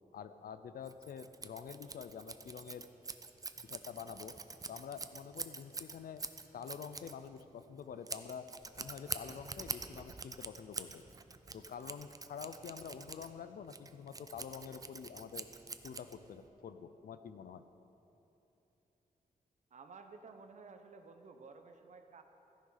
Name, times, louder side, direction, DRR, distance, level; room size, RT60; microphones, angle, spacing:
voice 1, 0.1-2.9 3.6-4.4 4.7-6.2 6.5-8.5 8.8-11.0 11.5-15.5 15.8-17.7, left 7 dB, 75° left, 11 dB, 0.6 m, -47 dB
Scissors, 0.8-16.5, right 4 dB, 25° right, 0.5 m, -46 dB
voice 2, 19.7-22.2, right 4 dB, 55° right, 6 dB, 1.0 m, -54 dB
14.5 x 10.5 x 5.7 m, 3.0 s
wide cardioid pair, 155°, 15 cm